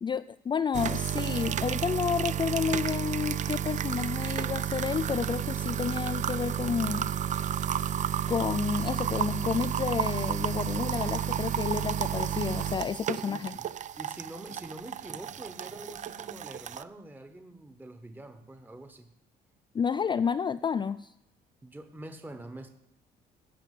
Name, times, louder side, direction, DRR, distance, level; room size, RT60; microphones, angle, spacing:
voice 1, 0.0-7.1 8.3-13.6 19.7-21.1, left 6 dB, 25° left, 11 dB, 0.4 m, -30 dB
sound 1, 0.7-16.8, right 9 dB, 45° right, 0.5 m, -31 dB
voice 2, 13.2-13.7 14.0-19.1 21.6-22.7, right 1 dB, 10° right, 8 dB, 1.1 m, -45 dB
15.5 x 6.0 x 9.2 m, 0.85 s
cardioid pair, 95°, 17 cm